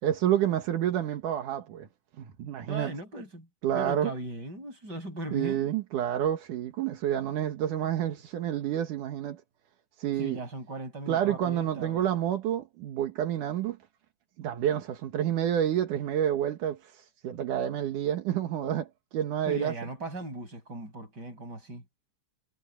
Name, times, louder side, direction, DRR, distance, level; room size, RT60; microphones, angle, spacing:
voice 1, 0.0-1.9 2.2-2.9 3.6-4.1 5.3-9.4 10.0-10.4 11.1-13.8 14.4-19.7, right 10 dB, 80° right, 3.0 m, -29 dB
voice 2, 2.7-3.5 3.7-5.7 10.2-12.0 19.5-21.8, right 2 dB, 30° right, 7.9 m, -38 dB
omnidirectional pair, 3.6 m